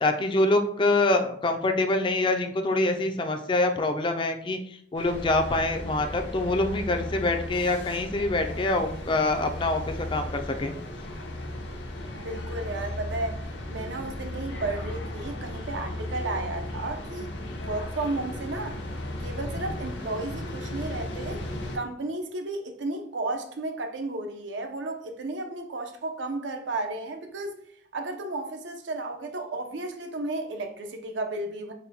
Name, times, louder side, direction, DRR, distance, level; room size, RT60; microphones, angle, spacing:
voice 1, 0.0-4.6 4.9-10.7 19.6-19.7, left 2 dB, 25° left, 0.4 m, -25 dB
sound 1, 5.0-21.8, left 1 dB, 80° left, 0.7 m, -35 dB
voice 2, 12.1-13.4 13.7-17.3 17.7-18.8 19.2-21.4 21.7-27.6 27.9-31.7, right 2 dB, 80° right, 0.6 m, -33 dB
4.0 x 2.2 x 4.1 m
head